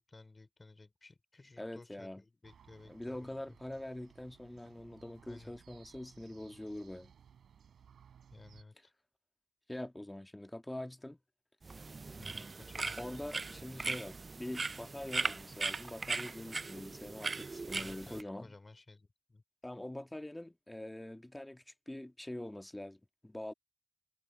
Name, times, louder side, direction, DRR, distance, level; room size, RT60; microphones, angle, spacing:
voice 1, 0.0-3.6 5.2-5.6 8.3-8.9 12.2-13.0 17.7-19.4, left 3 dB, 40° left, 4.4 m, -56 dB
voice 2, 1.6-2.2 2.9-7.1 9.7-11.2 13.0-18.5 19.6-23.5, left 1 dB, 15° left, 1.6 m, -44 dB
sound 1, 2.4-8.6, right 8 dB, 85° right, 5.0 m, -61 dB
sound 2, 11.6-18.2, right 3 dB, 50° right, 0.3 m, -39 dB
supercardioid pair, 40°, 0 cm